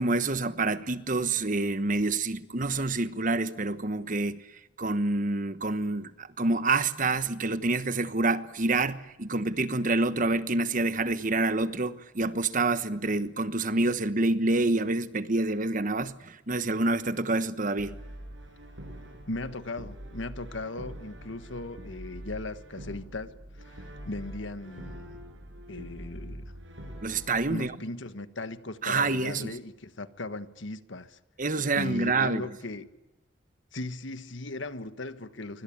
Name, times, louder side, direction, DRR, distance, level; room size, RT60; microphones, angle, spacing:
voice 1, 0.0-4.5 4.8-18.0 27.0-27.7 28.8-29.6 31.4-32.5, right 3 dB, 40° right, 1.2 m, -27 dB
Brass instrument, 17.8-27.6, equal, 70° right, 6.6 m, -44 dB
voice 2, 19.3-25.2 25.7-26.5 27.5-31.2 31.7-32.9 33.7-35.6, left 2 dB, 70° left, 1.5 m, -38 dB
25.5 x 24.5 x 8.7 m
head